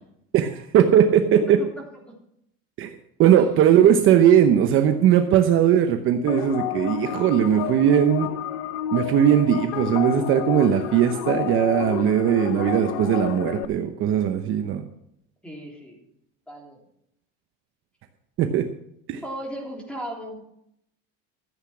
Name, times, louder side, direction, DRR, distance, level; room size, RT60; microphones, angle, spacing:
voice 1, 0.3-1.6 2.8-8.3 8.9-14.8 18.4-18.6 19.1-19.2, right 9 dB, 40° right, 6 dB, 0.9 m, -19 dB
voice 2, 1.3-1.7 1.9-2.1 15.4-16.0 16.5-16.8 19.2-20.4, equal, 5° left, -1 dB, 3.4 m, -36 dB
sound 1, 6.3-13.7, left 11 dB, 60° left, 0.8 m, -30 dB
14.0 x 8.2 x 6.2 m, 0.76 s
cardioid pair, 150°, 32 cm